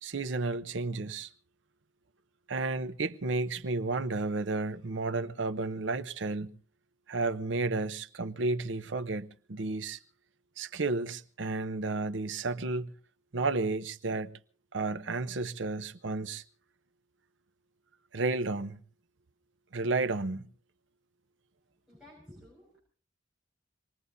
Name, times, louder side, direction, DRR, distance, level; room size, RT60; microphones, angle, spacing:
voice 1, 0.0-1.3 2.5-6.5 7.1-10.0 10.6-12.9 13.3-14.3 14.7-16.4 18.1-18.8 19.7-20.5, right 3 dB, 75° right, 0.8 m, -32 dB
voice 2, 21.9-22.8, left 1 dB, 5° right, 5.8 m, -53 dB
26.0 x 19.5 x 2.7 m
head